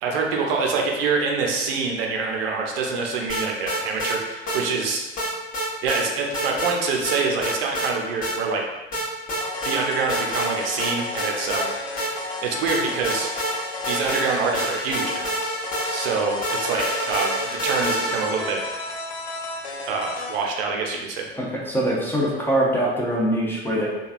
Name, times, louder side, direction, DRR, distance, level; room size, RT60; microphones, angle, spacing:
voice 1, 0.0-5.0 5.8-8.6 9.6-11.7 12.4-13.3 13.9-15.4 15.9-18.6 19.9-21.3, right 4 dB, 60° right, 1 dB, 0.6 m, -25 dB
sound 1, 3.3-4.2 4.5-4.6 5.2-6.0 6.3-6.7 7.0-7.9 8.2-8.4 8.9-9.8 10.1-10.5 10.8-12.3 12.7-18.4, right 1 dB, 25° left, 1.0 m, -28 dB
sound 2, 9.4-20.4, left 2 dB, 75° left, 0.6 m, -33 dB
voice 2, 21.4-23.9, right 1 dB, 5° left, -5 dB, 0.6 m, -23 dB
3.2 x 2.3 x 2.5 m, 1.1 s
figure-of-eight pair, 75°, 32 cm